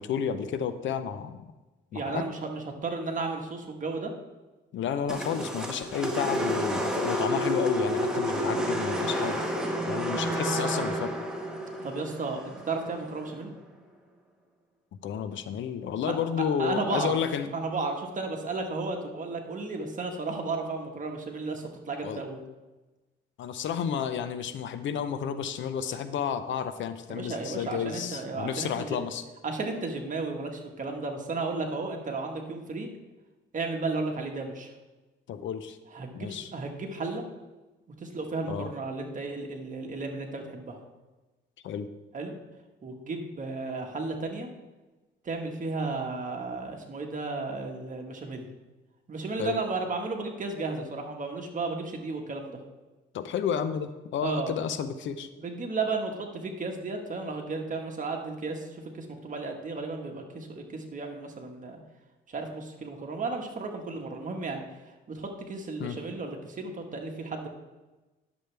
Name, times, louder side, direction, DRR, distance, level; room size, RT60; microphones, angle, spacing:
voice 1, 0.0-1.4 1.9-2.3 4.7-9.4 9.9-11.2 15.0-17.5 22.0-22.2 23.4-29.2 35.3-35.8 36.1-36.5 38.5-38.7 41.6-41.9 49.4-49.6 53.1-55.3 65.8-66.0, left 8 dB, 70° left, 11 dB, 0.7 m, -31 dB
voice 2, 1.9-4.1 9.9-10.0 11.8-13.5 16.1-16.2 16.6-17.2 17.5-22.4 27.1-29.0 29.4-32.9 33.5-34.7 35.9-37.2 38.0-40.8 42.1-42.3 42.8-44.5 45.2-48.5 49.1-52.6 54.2-54.5 55.4-61.8 62.3-64.6 65.1-67.5, right 3 dB, 40° right, 3 dB, 1.5 m, -34 dB
sound 1, 5.1-13.4, equal, 5° right, 1.4 m, -30 dB
10.5 x 7.2 x 3.4 m, 1.1 s
cardioid pair, 90°, 20 cm